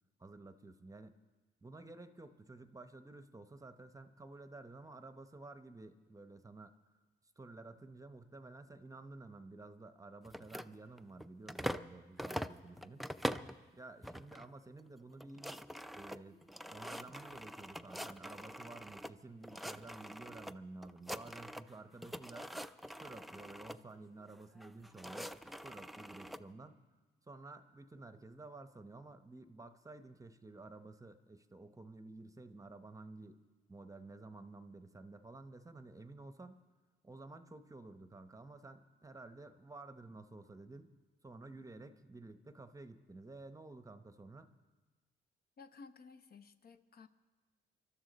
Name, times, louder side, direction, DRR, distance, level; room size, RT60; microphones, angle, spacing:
voice 1, 0.2-1.1 1.6-6.7 7.4-13.0 13.7-15.6 15.9-16.4 16.7-22.5 23.0-26.8 27.3-33.4 33.7-36.6 37.0-40.9 41.2-44.5, right 2 dB, 15° right, 10 dB, 0.8 m, -52 dB
sound 1, 10.3-11.9 12.2-13.6 14.0-14.5 14.8-14.9 15.1-19.1 19.4-20.5 20.8-21.7 22.0-23.8 24.6-26.4, equal, ahead, 0.4 m, -44 dB
voice 2, 45.6-47.1, left 4 dB, 50° left, 7 dB, 0.9 m, -55 dB
24.5 x 12.5 x 4.1 m, 1.3 s
cardioid pair, 90°, 20 cm